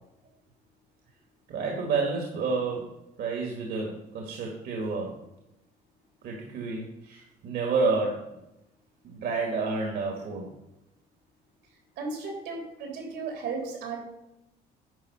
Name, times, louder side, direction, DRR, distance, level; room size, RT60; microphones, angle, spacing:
voice 1, 1.5-5.2 6.2-8.4 9.0-10.6, right 4 dB, 65° right, 0 dB, 1.9 m, -30 dB
voice 2, 12.0-14.0, right 4 dB, 85° right, 1 dB, 3.3 m, -35 dB
10.5 x 5.4 x 5.7 m, 0.88 s
cardioid pair, 110°, 17 cm